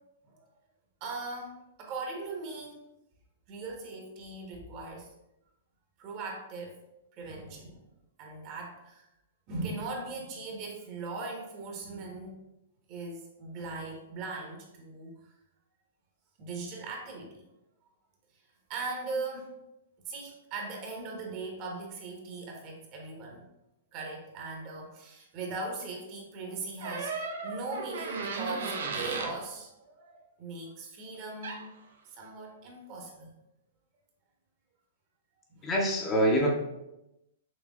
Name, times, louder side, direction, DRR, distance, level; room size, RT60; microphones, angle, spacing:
voice 1, 1.0-2.8 3.5-5.1 6.0-6.7 7.1-7.8 8.2-9.1 9.5-12.4 12.9-15.2 16.4-17.4 18.7-19.5 20.1-23.4 23.9-31.7 32.0-33.3 35.5-35.7, right 3 dB, 40° right, 0 dB, 1.1 m, -39 dB
sound 1, 26.8-29.3 31.4-31.6, right 4 dB, 65° right, 0.7 m, -35 dB
voice 2, 35.6-36.5, equal, 20° left, -2 dB, 1.0 m, -25 dB
6.2 x 3.2 x 2.4 m, 0.90 s
figure-of-eight pair, 110°, 0 cm